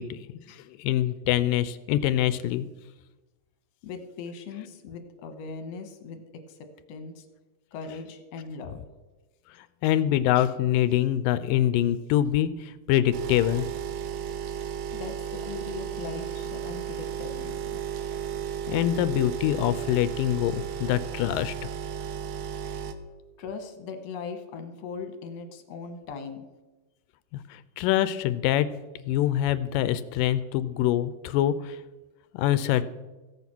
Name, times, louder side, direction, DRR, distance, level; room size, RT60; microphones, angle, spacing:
voice 1, 0.0-2.7 9.8-13.7 18.7-21.6 27.3-28.7 29.1-31.8 32.3-32.8, left 12 dB, 85° left, 14 dB, 2.2 m, -25 dB
voice 2, 3.8-7.3 7.7-8.8 14.9-17.8 21.9-22.0 23.4-26.5, left 5 dB, 60° left, 6 dB, 1.9 m, -39 dB
sound 1, 13.1-22.9, right 9 dB, 70° right, 1.7 m, -34 dB
15.5 x 8.3 x 6.0 m, 1.1 s
omnidirectional pair, 4.0 m